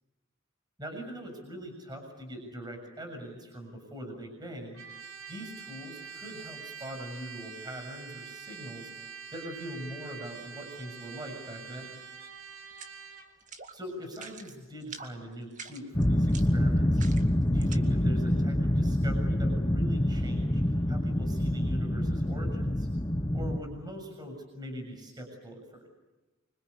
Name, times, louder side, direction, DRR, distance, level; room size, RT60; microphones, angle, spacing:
voice 1, 0.8-4.8 5.3-8.9 9.3-12.0 13.7-17.1 17.5-22.9 23.3-25.9, equal, 20° right, 4 dB, 6.9 m, -42 dB
Trumpet, 4.7-13.3, right 6 dB, 75° right, 5.0 m, -45 dB
sound 1, 12.7-13.0 13.4-13.7 14.0-14.5 14.8-15.1 15.5-17.8, right 5 dB, 35° right, 2.2 m, -45 dB
sound 2, 15.9-23.6, left 1 dB, 20° left, 1.0 m, -26 dB
26.0 x 25.5 x 8.5 m, 1.1 s
head